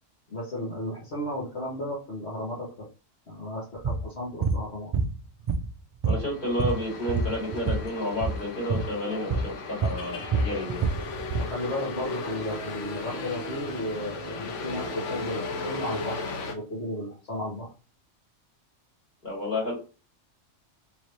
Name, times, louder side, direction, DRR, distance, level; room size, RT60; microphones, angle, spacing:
voice 1, 0.3-2.9 3.3-4.9 11.4-17.7, left 1 dB, 60° left, -6 dB, 1.6 m, -34 dB
sound 1, 3.8-4.0 4.4-4.6 4.9-5.8 6.0-7.9 8.1-8.4 8.7-8.9 9.3-9.5 9.8-11.5, right 4 dB, 70° right, 0.3 m, -26 dB
voice 2, 6.1-10.8 19.2-19.7, left 1 dB, 40° left, -5 dB, 2.5 m, -30 dB
sound 2, 6.2-16.5, left 3 dB, 75° left, 1.1 m, -36 dB
3.8 x 3.2 x 2.7 m, 0.34 s
omnidirectional pair, 1.3 m